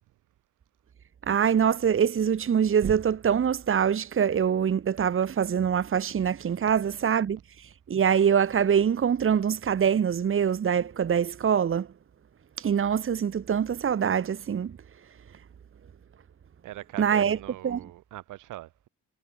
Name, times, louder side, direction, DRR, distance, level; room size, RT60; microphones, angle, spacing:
voice 1, 1.3-11.9 12.6-14.8 17.0-17.4 17.6-17.8, right 8 dB, 45° right, 1.6 m, -24 dB
voice 2, 16.6-18.9, right 15 dB, 90° right, 5.1 m, -42 dB
cardioid pair, 90°, 30 cm